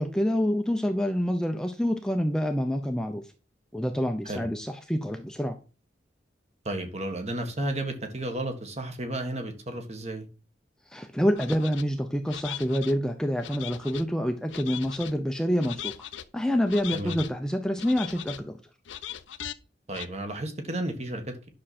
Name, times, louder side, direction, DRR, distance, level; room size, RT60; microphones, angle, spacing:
voice 1, 0.0-3.2 3.7-5.6 10.9-15.9 16.3-18.6, equal, 5° left, 0.7 m, -27 dB
voice 2, 6.6-10.3 16.9-17.2 19.9-21.5, right 1 dB, 35° right, 1.6 m, -33 dB
sound 1, 11.4-11.8 12.3-12.9 13.4-14.1 14.5-15.1 15.6-16.2 16.7-17.3 17.8-18.4 18.9-19.5 19.9-20.1, left 11 dB, 85° left, 0.7 m, -39 dB
10.0 x 6.3 x 4.3 m
head